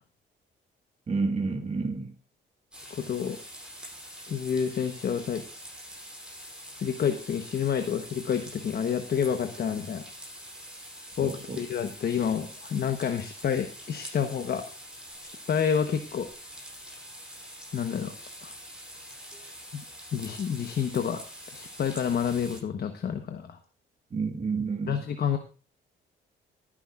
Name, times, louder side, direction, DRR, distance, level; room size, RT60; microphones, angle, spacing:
voice 1, 1.1-2.1 11.2-11.6 24.1-25.0, right 4 dB, 35° right, 1.7 m, -30 dB
sound 1, 2.7-22.6, equal, 5° right, 7.8 m, -45 dB
voice 2, 2.9-3.4 4.3-5.4 6.8-10.0 11.2-14.6 15.2-16.3 17.7-18.1 18.4-18.5 19.7-19.8 20.1-21.2 21.5-23.6 24.9-25.4, left 7 dB, 50° left, 1.1 m, -29 dB
18.5 x 10.0 x 2.5 m
cardioid pair, 90°, 20 cm